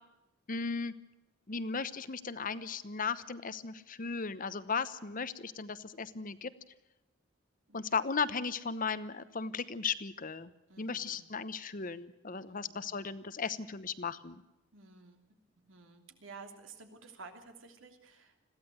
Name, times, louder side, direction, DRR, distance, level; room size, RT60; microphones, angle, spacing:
voice 1, 0.5-0.9 1.5-6.5 7.7-10.5 10.8-14.4, left 5 dB, 45° left, 14 dB, 1.0 m, -36 dB
voice 2, 10.7-11.3 12.4-12.9 14.7-15.2 15.7-18.4, right 4 dB, 80° right, 5 dB, 3.0 m, -53 dB
21.5 x 15.5 x 7.9 m, 0.95 s
head